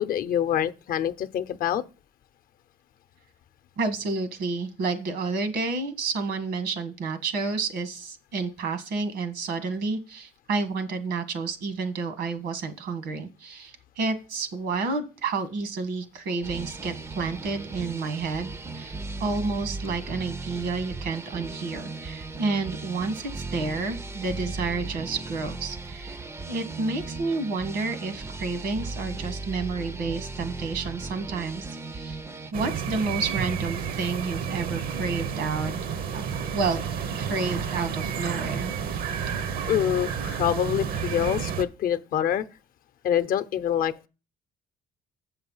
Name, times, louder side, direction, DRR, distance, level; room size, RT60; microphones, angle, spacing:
voice 1, 0.0-1.8 39.7-42.4 43.0-43.9, left 10 dB, 60° left, 0.7 m, -25 dB
voice 2, 3.8-26.2 26.5-32.2 32.5-35.7 36.1-36.8 37.2-38.8, right 4 dB, 75° right, 1.6 m, -30 dB
sound 1, 16.4-32.5, right 3 dB, 15° right, 0.5 m, -37 dB
sound 2, 32.5-41.6, right 7 dB, 60° right, 0.8 m, -31 dB
7.6 x 5.7 x 5.5 m
cardioid pair, 110°, 17 cm